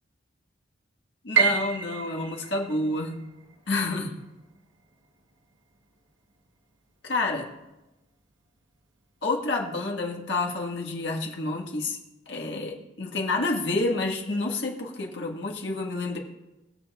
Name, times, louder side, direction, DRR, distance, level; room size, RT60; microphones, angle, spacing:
voice 1, 1.2-3.2 3.7-4.2 7.0-7.5 9.2-12.0 12.3-16.2, left 2 dB, 65° left, 0 dB, 1.6 m, -29 dB
Piano, 1.3-7.3 7.6-8.8 9.2-9.3 10.0-10.3, right 6 dB, 75° right, 1.0 m, -31 dB
21.5 x 7.1 x 2.4 m, 1.0 s
head